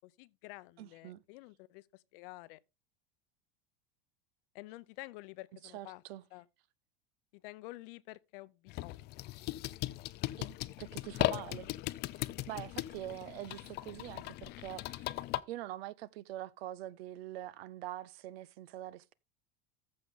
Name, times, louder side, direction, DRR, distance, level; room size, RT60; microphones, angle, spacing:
voice 1, 0.0-2.6 4.5-6.0 6.3-6.5 7.3-9.7 10.0-10.1, left 20 dB, 60° left, 0.7 m, -50 dB
voice 2, 0.8-1.2 5.7-6.2 10.4-11.7 12.5-15.2 15.5-19.1, right 14 dB, 80° right, 0.7 m, -44 dB
sound 1, 8.7-15.4, left 17 dB, 35° left, 0.4 m, -38 dB
14.5 x 5.4 x 3.7 m
supercardioid pair, 140°, 31 cm